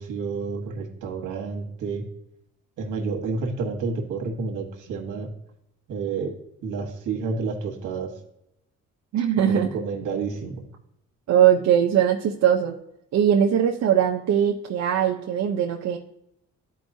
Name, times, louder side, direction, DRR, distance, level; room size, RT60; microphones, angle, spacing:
voice 1, 0.0-2.0 2.8-5.3 5.9-6.3 6.6-8.1 9.5-10.6, right 4 dB, 80° right, 2 dB, 1.4 m, -30 dB
voice 2, 9.1-9.7 11.3-12.7 13.1-16.0, right 9 dB, 65° right, 0 dB, 0.7 m, -20 dB
12.5 x 4.6 x 2.7 m, 0.81 s
cardioid pair, 90°, 30 cm